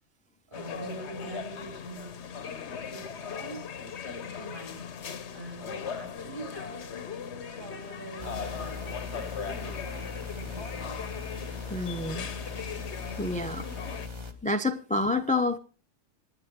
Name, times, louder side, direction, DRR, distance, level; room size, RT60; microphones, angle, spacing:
sound 1, 0.5-14.1, left 7 dB, 65° left, 1.2 m, -39 dB
voice 1, 0.5-2.2 2.9-4.9 5.3-11.0, right 2 dB, 40° right, 2 dB, 7.2 m, -44 dB
sound 2, 8.2-14.3, left 4 dB, 20° right, 1.6 m, -39 dB
voice 2, 11.7-12.3 13.2-13.6 14.4-15.6, left 2 dB, 10° left, 8 dB, 0.5 m, -28 dB
27.0 x 10.0 x 3.7 m, 0.36 s
omnidirectional pair, 1.3 m